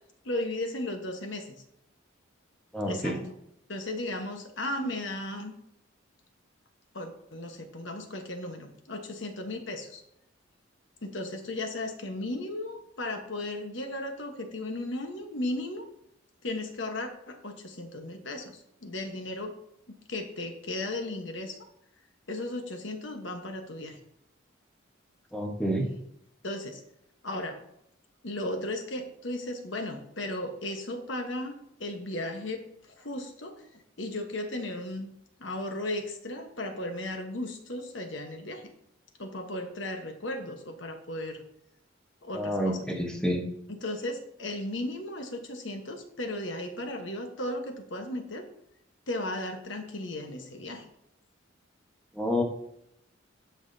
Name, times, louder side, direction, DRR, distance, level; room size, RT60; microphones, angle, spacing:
voice 1, 0.2-1.6 2.9-3.3 3.7-5.5 6.9-10.0 11.0-15.9 16.4-19.5 19.9-21.6 22.3-24.0 26.4-26.8 27.2-27.6 28.2-33.6 34.0-35.1 35.4-38.7 39.2-41.4 42.2-42.8 43.7-48.5 49.1-50.9, left 1 dB, 65° left, 5 dB, 1.2 m, -35 dB
voice 2, 2.7-3.2 25.3-25.8 42.3-43.4 52.2-52.4, equal, 5° left, 0 dB, 1.2 m, -28 dB
16.0 x 5.9 x 2.8 m, 0.76 s
head